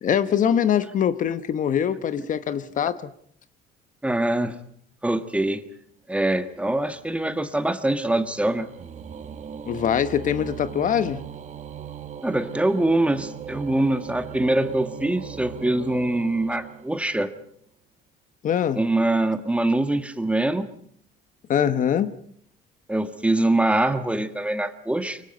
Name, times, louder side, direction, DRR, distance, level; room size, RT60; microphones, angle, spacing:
voice 1, 0.0-3.1 9.7-11.2 18.4-18.8 21.5-22.1, left 8 dB, 50° left, 1.1 m, -23 dB
voice 2, 4.0-4.6 5.0-5.6 6.1-8.7 12.2-17.3 18.7-20.7 22.9-25.2, right 1 dB, 5° right, 1.6 m, -23 dB
sound 1, 6.5-17.4, right 8 dB, 45° right, 1.4 m, -39 dB
25.0 x 23.5 x 5.4 m
cardioid pair, 110°, 17 cm